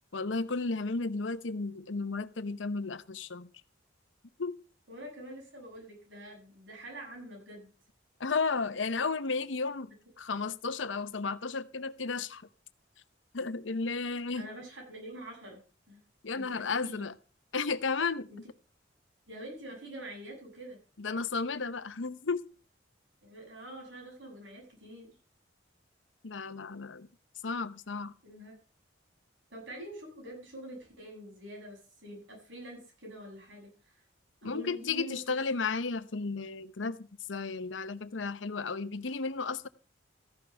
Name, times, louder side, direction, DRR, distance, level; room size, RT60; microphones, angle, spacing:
voice 1, 0.1-3.5 4.4-4.5 8.2-9.9 10.2-12.4 13.3-14.5 16.2-17.1 17.5-18.3 21.0-22.4 26.2-27.1 27.4-28.1 34.4-39.7, left 4 dB, 80° left, 0.8 m, -33 dB
voice 2, 4.9-7.7 14.3-15.6 15.9-16.0 16.3-17.0 18.3-18.4 19.3-20.8 23.2-25.2 28.2-28.5 29.5-34.0 34.4-35.4, right 1 dB, 75° right, 7.8 m, -46 dB
14.5 x 11.0 x 3.4 m
head